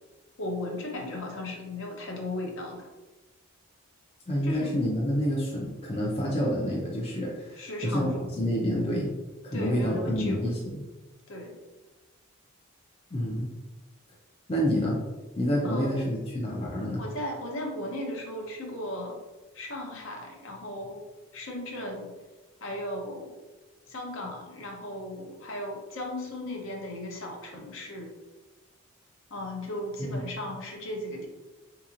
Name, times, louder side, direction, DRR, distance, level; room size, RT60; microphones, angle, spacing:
voice 1, 0.4-2.9 4.4-4.8 7.6-8.3 9.5-10.4 11.3-11.6 15.6-16.1 17.0-19.2 19.5-21.1 21.3-22.1 22.6-23.3 23.9-28.1 29.3-31.3, left 1 dB, 60° left, 1 dB, 0.7 m, -36 dB
voice 2, 4.3-9.1 9.4-10.8 13.1-13.5 14.5-15.0 15.4-17.0 30.0-30.2, equal, 25° left, -4 dB, 0.5 m, -28 dB
3.8 x 2.9 x 2.5 m, 1.1 s
head